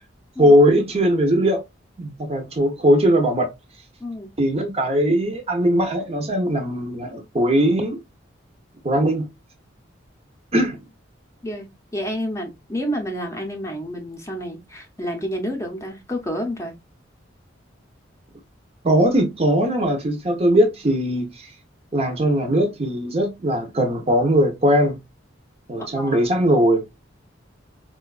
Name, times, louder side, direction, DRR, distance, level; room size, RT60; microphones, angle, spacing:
voice 1, 0.4-1.6 2.0-3.5 4.4-8.0 8.8-9.3 10.5-10.8 18.8-21.5 21.9-25.0 25.7-26.8, equal, 30° right, 0.6 m, -19 dB
voice 2, 4.0-4.3 11.4-16.7 25.8-26.2, equal, 15° left, 0.6 m, -29 dB
4.4 x 2.2 x 2.3 m
head